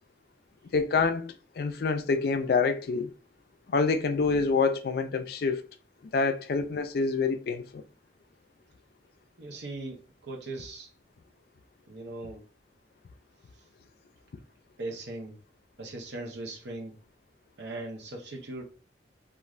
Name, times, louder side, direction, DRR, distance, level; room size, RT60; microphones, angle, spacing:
voice 1, 0.7-3.1 3.7-5.6 6.1-7.8, left 4 dB, 55° left, 0.3 m, -27 dB
voice 2, 9.4-10.9 11.9-12.4 14.8-15.4 15.8-16.9 17.6-18.6, right 2 dB, 70° right, 0.8 m, -39 dB
3.2 x 2.4 x 2.4 m
head